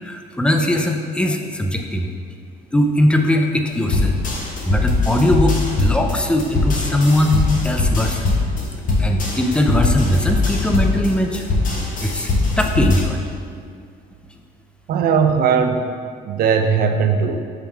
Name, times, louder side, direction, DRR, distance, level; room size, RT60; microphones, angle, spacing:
voice 1, 0.0-2.1 2.7-4.2 4.6-8.4 9.0-11.4 12.0-13.3, left 1 dB, 5° left, 3 dB, 0.5 m, -20 dB
sound 1, 3.9-13.0, left 3 dB, 50° left, 1.3 m, -21 dB
voice 2, 14.9-15.9 16.2-17.4, right 6 dB, 60° right, 6 dB, 0.6 m, -18 dB
8.0 x 3.4 x 4.5 m, 2.2 s
cardioid pair, 110°, 17 cm